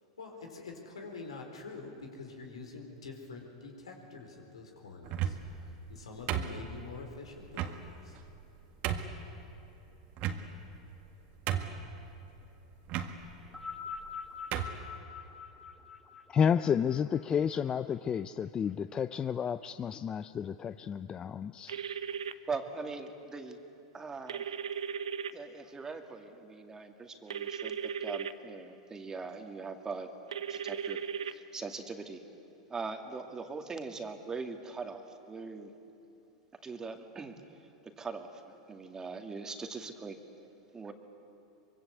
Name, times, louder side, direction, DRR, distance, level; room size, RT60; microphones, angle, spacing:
voice 1, 0.2-5.4 5.7-8.2, left 4 dB, 85° left, 3 dB, 4.4 m, -46 dB
sound 1, 5.0-5.6 6.3-7.0 7.5-7.8 8.4-8.5 8.8-9.2 10.2-10.7 11.1-11.2 11.5-11.9 12.9-13.1 14.0-14.1 14.5-14.8, right 10 dB, 50° right, 1.8 m, -33 dB
sound 2, 13.4-17.9 18.8-18.9, left 6 dB, 5° left, 2.0 m, -45 dB
voice 2, 16.3-21.8, left 7 dB, 25° left, 13 dB, 0.5 m, -31 dB
sound 3, 21.7-22.3 24.3-25.3 27.3-28.3 30.3-31.3, right 7 dB, 85° right, 0.9 m, -36 dB
voice 3, 22.5-23.6 23.9-24.5 25.3-30.2 30.5-31.0 31.3-32.2 32.7-35.7 36.6-37.4 38.0-40.2 40.7-40.9, right 4 dB, 20° right, 5 dB, 2.2 m, -41 dB
24.0 x 24.0 x 8.2 m, 2.9 s
hypercardioid pair, 100°, 3 cm